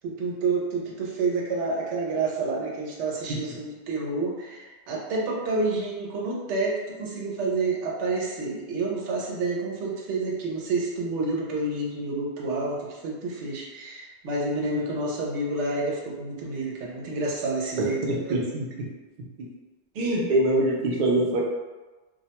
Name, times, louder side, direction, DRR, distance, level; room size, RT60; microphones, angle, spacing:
voice 1, 0.0-18.0 18.3-18.4, right 3 dB, 85° right, -2 dB, 0.9 m, -29 dB
voice 2, 17.8-18.7 20.0-21.4, right 1 dB, 55° right, -2 dB, 0.5 m, -24 dB
2.3 x 2.1 x 2.8 m, 1.2 s
omnidirectional pair, 1.2 m